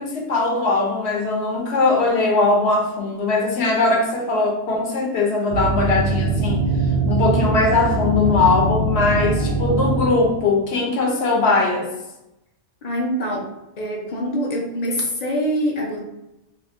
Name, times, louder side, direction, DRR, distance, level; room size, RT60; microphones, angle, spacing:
voice 1, 0.0-6.7 7.1-11.9, left 3 dB, 65° left, 0 dB, 1.0 m, -20 dB
sound 1, 5.5-10.6, right 2 dB, 65° right, 0.4 m, -22 dB
voice 2, 12.8-16.0, equal, 45° left, 0 dB, 0.6 m, -25 dB
2.9 x 2.5 x 3.6 m, 0.91 s
omnidirectional pair, 1.2 m